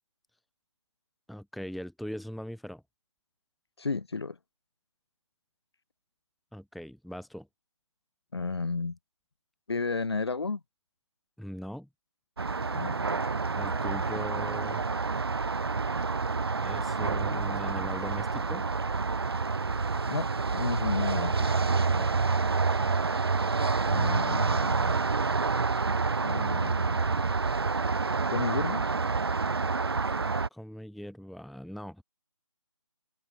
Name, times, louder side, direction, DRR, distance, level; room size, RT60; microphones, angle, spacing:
voice 1, 1.3-2.8 6.5-7.5 11.4-11.9 13.5-14.8 16.6-18.7 21.9-22.1 30.5-32.0, equal, ahead, 1.4 m, -40 dB
voice 2, 3.8-4.4 8.3-9.0 9.7-10.6 12.7-13.2 20.1-21.5 23.9-25.1 26.2-27.1 28.3-28.9, left 4 dB, 50° left, 5.3 m, -33 dB
sound 1, 12.4-30.5, right 4 dB, 45° right, 1.2 m, -28 dB
figure-of-eight pair, 175°, 17 cm